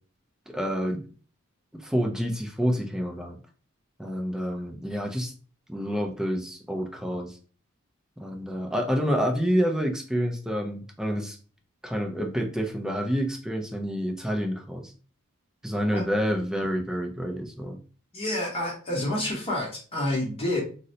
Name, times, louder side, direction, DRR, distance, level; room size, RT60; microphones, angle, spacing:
voice 1, 0.5-1.0 1.7-3.4 4.0-5.3 5.7-7.4 8.2-11.4 11.8-14.9 15.6-17.8, equal, 5° right, 2 dB, 0.4 m, -28 dB
voice 2, 18.1-20.6, left 1 dB, 25° left, -3 dB, 0.8 m, -28 dB
3.8 x 2.1 x 2.7 m, 0.39 s
head